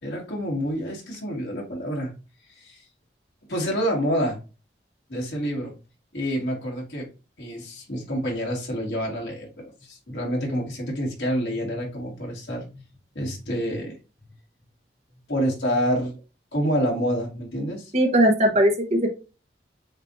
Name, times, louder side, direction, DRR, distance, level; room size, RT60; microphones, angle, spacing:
voice 1, 0.0-2.1 2.5-2.9 3.5-4.4 5.1-5.7 6.1-7.1 7.4-12.8 13.2-14.0 15.3-16.1 16.5-17.9, equal, 80° left, -2 dB, 2.0 m, -28 dB
voice 2, 17.9-19.1, right 1 dB, 40° right, 4 dB, 0.9 m, -19 dB
7.2 x 2.5 x 2.6 m, 0.31 s
head